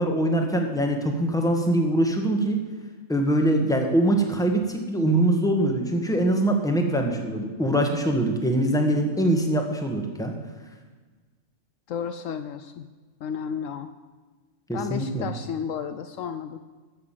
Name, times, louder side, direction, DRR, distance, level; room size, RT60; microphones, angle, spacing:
voice 1, 0.0-2.6 3.1-10.3 14.7-15.3, right 1 dB, 5° left, 3 dB, 1.3 m, -23 dB
voice 2, 11.9-12.9 13.2-13.9 14.7-16.6, left 7 dB, 70° left, 10 dB, 0.9 m, -32 dB
14.5 x 6.2 x 7.5 m, 1.4 s
omnidirectional pair, 1.5 m